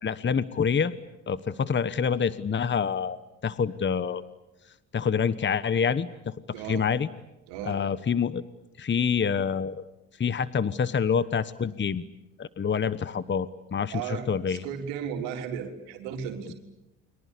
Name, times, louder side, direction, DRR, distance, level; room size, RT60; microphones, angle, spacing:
voice 1, 0.0-0.9 1.3-4.2 4.9-6.3 6.7-7.1 7.6-8.4 8.8-9.8 10.2-12.0 12.4-14.6, left 6 dB, 30° left, 15 dB, 1.2 m, -27 dB
voice 2, 6.5-6.9 7.5-7.8 13.9-16.5, right 8 dB, 85° right, 4 dB, 3.9 m, -35 dB
29.5 x 24.0 x 8.5 m, 0.95 s
supercardioid pair, 70°, 38 cm